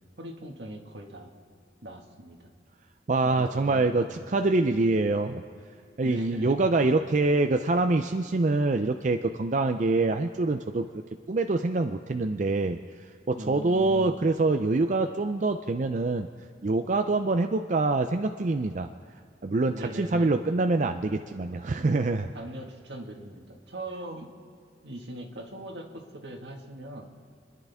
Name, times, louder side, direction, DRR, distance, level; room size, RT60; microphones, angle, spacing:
voice 1, 0.2-1.3 1.8-2.5 3.2-4.3 6.0-7.2 13.3-14.2 19.7-20.3 21.5-21.9 22.3-24.3 24.8-27.1, right 1 dB, 75° right, 2 dB, 1.7 m, -41 dB
voice 2, 3.1-5.4 6.0-10.9 11.3-12.8 13.3-16.3 16.6-18.9 19.4-22.3, right 3 dB, 45° right, 7 dB, 0.5 m, -25 dB
29.0 x 10.5 x 3.5 m, 2.4 s
head